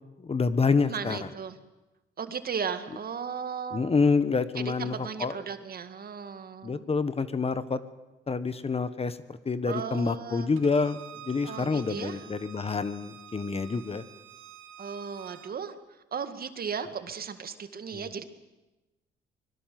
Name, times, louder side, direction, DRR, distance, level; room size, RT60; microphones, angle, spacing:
voice 1, 0.2-1.2 3.7-4.9 5.2-5.3 6.6-7.8 8.3-9.2 9.4-11.0 11.2-14.0 17.9-18.0, left 4 dB, 30° left, 13 dB, 1.4 m, -27 dB
voice 2, 0.9-1.6 2.2-3.9 4.6-6.8 9.7-10.5 11.4-12.3 14.8-15.7 16.1-18.2, right 6 dB, 50° right, 9 dB, 2.0 m, -36 dB
Bowed string instrument, 10.6-15.5, right 9 dB, 80° right, 1.7 m, -48 dB
24.5 x 22.0 x 7.8 m, 1.0 s
cardioid pair, 90°, 20 cm